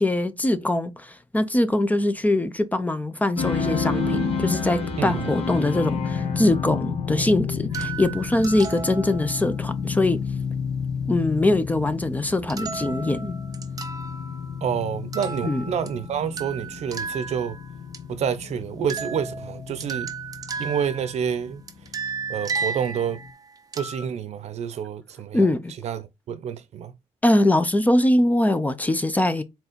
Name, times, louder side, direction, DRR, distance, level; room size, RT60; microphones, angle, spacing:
voice 1, 0.0-10.2 11.1-13.4 15.4-15.6 25.3-25.7 27.2-29.4, left 1 dB, 15° left, 0.5 m, -22 dB
sound 1, 3.4-23.3, left 5 dB, 55° left, 2.0 m, -31 dB
voice 2, 5.0-5.3 14.6-17.6 18.1-20.1 20.6-21.6 22.3-23.2 23.7-25.5 25.8-26.9, right 8 dB, 65° right, 0.8 m, -28 dB
sound 2, 7.7-9.6 12.5-14.8 15.1-18.0 18.9-21.4 21.7-24.1, right 4 dB, 30° right, 0.6 m, -34 dB
4.8 x 3.9 x 5.1 m
wide cardioid pair, 155°, 12 cm